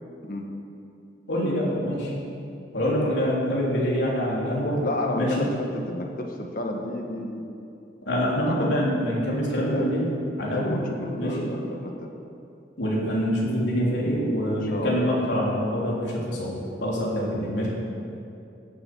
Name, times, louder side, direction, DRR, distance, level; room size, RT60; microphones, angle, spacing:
voice 1, 1.3-2.1 2.7-4.8 5.2-5.5 8.1-10.1 10.4-10.8 11.2-11.5 12.8-16.5 16.8-17.7, equal, 80° left, -5 dB, 3.4 m, -25 dB
voice 2, 4.8-7.4 8.4-8.7 9.5-9.9 10.5-12.1 14.2-14.4 14.7-15.2, left 1 dB, 50° left, 2 dB, 1.5 m, -31 dB
16.0 x 8.1 x 6.2 m, 2.6 s
head